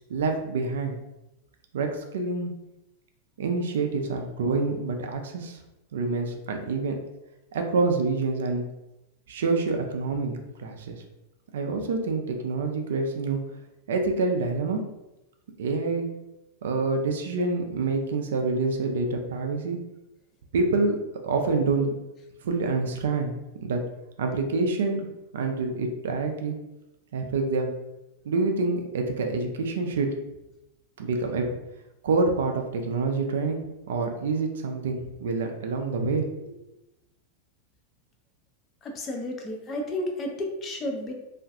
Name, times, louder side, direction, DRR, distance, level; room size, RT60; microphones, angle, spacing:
voice 1, 0.1-1.0 1.7-2.5 3.4-5.6 5.9-6.9 7.5-8.6 9.3-11.0 11.5-13.4 13.9-14.8 15.6-16.1 16.6-19.8 20.5-21.0 21.2-21.9 22.4-23.3 23.6-23.8 24.2-25.1 25.3-26.6 27.1-27.7 28.3-30.1 31.0-31.5 32.0-33.6 33.9-36.6, right 3 dB, 60° right, 4 dB, 0.3 m, -27 dB
voice 2, 38.8-41.1, left 1 dB, 25° left, 2 dB, 0.4 m, -32 dB
2.4 x 2.2 x 2.5 m, 0.93 s
figure-of-eight pair, 90°, 0 cm